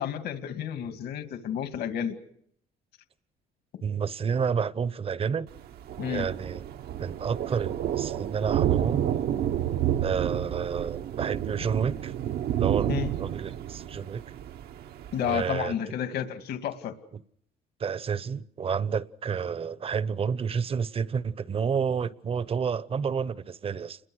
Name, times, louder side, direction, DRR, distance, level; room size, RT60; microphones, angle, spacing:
voice 1, 0.0-2.1 6.0-6.3 12.9-13.1 15.1-16.9, left 9 dB, 70° left, 2.3 m, -31 dB
voice 2, 3.8-5.5 6.1-6.6 7.0-9.1 10.0-12.1 12.6-12.9 13.2-14.2 15.2-15.7 17.8-24.0, right 6 dB, 35° right, 0.9 m, -30 dB
Thunder, 5.5-15.5, right 11 dB, 70° right, 1.0 m, -30 dB
29.0 x 21.5 x 6.3 m
cardioid pair, 110°, 17 cm